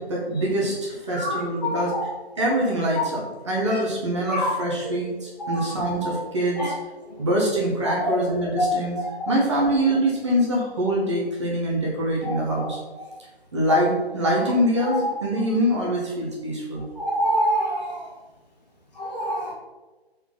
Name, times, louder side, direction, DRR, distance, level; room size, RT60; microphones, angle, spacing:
voice 1, 0.0-1.9 2.4-6.7 7.2-13.0 13.5-16.9, right 1 dB, 25° right, -4 dB, 1.5 m, -24 dB
voice 2, 1.1-2.1 4.3-4.5 5.4-5.6 6.0-6.1 6.6-6.7 8.0-8.2 8.6-8.7 12.3-12.4 14.9-15.0 17.0-17.9 19.0-19.5, equal, 40° left, -3 dB, 2.2 m, -25 dB
7.8 x 4.7 x 3.9 m, 1.2 s
figure-of-eight pair, 155°, 32 cm